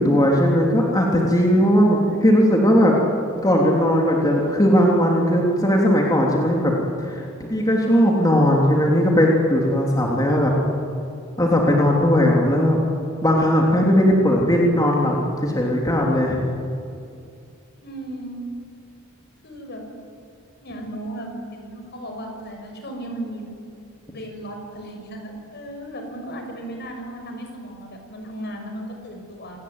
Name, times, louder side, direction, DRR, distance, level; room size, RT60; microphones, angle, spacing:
voice 1, 0.0-2.9 3.4-10.5 11.4-12.8 13.2-16.5, equal, 20° left, -2 dB, 3.4 m, -18 dB
voice 2, 17.8-18.4 19.4-19.9 20.6-23.5 24.1-29.6, right 1 dB, 50° left, 3 dB, 6.1 m, -35 dB
27.5 x 19.5 x 9.7 m, 2.5 s
head